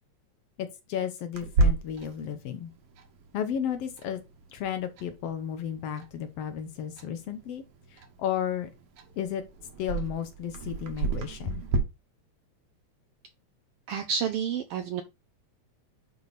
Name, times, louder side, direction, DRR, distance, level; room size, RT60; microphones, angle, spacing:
voice 1, 0.6-2.7 3.3-4.2 4.5-7.6 7.9-8.7 9.2-9.4 9.8-11.6, left 9 dB, 75° left, 1.5 m, -33 dB
Clock, 1.3-11.8, right 3 dB, 60° right, 2.0 m, -33 dB
voice 2, 13.9-15.0, right 7 dB, 85° right, 1.3 m, -29 dB
9.5 x 3.3 x 4.1 m
omnidirectional pair, 3.3 m